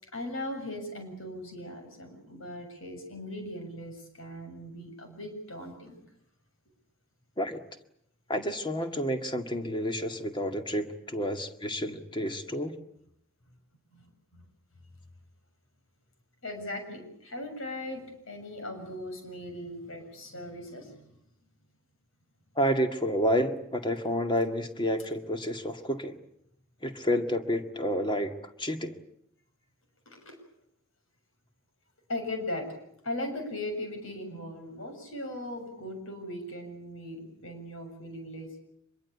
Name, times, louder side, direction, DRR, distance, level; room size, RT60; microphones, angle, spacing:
voice 1, 0.0-6.0 13.9-14.5 16.4-21.1 30.1-30.4 32.1-32.8 33.0-38.6, left 1 dB, 70° left, 5 dB, 7.1 m, -39 dB
voice 2, 8.3-12.7 22.6-26.2 26.8-28.3 28.6-29.0, equal, 25° left, 6 dB, 2.0 m, -29 dB
25.5 x 22.5 x 8.4 m, 0.73 s
head